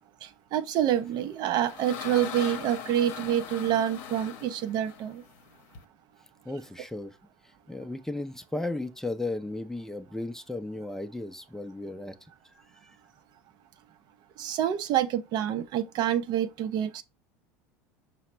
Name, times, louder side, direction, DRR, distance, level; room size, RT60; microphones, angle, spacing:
voice 1, 0.2-5.2 14.4-17.0, right 10 dB, 55° right, 0.5 m, -27 dB
sound 1, 1.2-5.8, left 7 dB, 65° left, 0.8 m, -40 dB
voice 2, 6.4-7.2 7.4-12.2 12.8-12.9, left 2 dB, 5° left, 0.5 m, -35 dB
5.6 x 2.1 x 4.3 m
hypercardioid pair, 85°, 9 cm